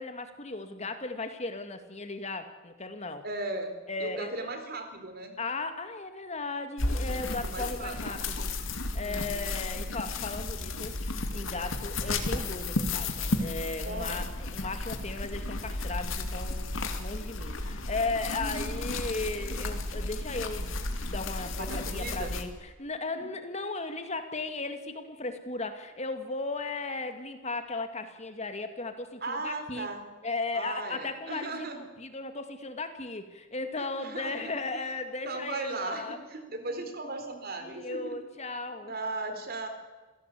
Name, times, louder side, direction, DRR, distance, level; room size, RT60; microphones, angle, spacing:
voice 1, 0.0-3.2 3.9-4.6 5.4-10.9 11.3-14.2 14.5-16.7 17.0-20.8 21.0-29.9 30.2-36.2 37.6-38.9, left 3 dB, 35° left, 8 dB, 2.2 m, -36 dB
voice 2, 3.2-3.7 4.0-5.3 7.1-8.2 9.0-9.5 13.8-14.3 18.4-18.7 21.6-22.3 23.1-23.3 29.2-30.0 30.5-31.8 33.8-34.8 35.2-38.2 38.8-39.7, right 2 dB, 50° right, 7 dB, 4.1 m, -37 dB
sound 1, 6.8-22.4, left 2 dB, 80° left, 2.7 m, -33 dB
27.0 x 17.0 x 8.5 m, 1.3 s
head